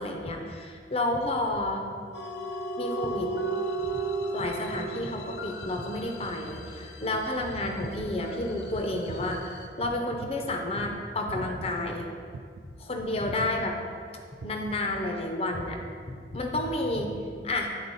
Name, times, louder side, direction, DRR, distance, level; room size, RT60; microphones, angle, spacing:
voice 1, 0.0-1.9 2.8-3.3 3.9-4.0 4.3-9.5 9.8-12.1 12.6-13.8 14.4-15.8 16.1-17.7, left 1 dB, 35° left, 2 dB, 0.6 m, -30 dB
sound 1, 2.1-9.7, right 2 dB, 80° left, 0.8 m, -35 dB
sound 2, 8.0-8.4 9.1-9.5 10.2-10.7 11.3-11.6 12.3-12.7 13.4-13.7 14.4-14.7, right 4 dB, 85° right, 0.4 m, -43 dB
8.7 x 4.0 x 4.1 m, 2.1 s
head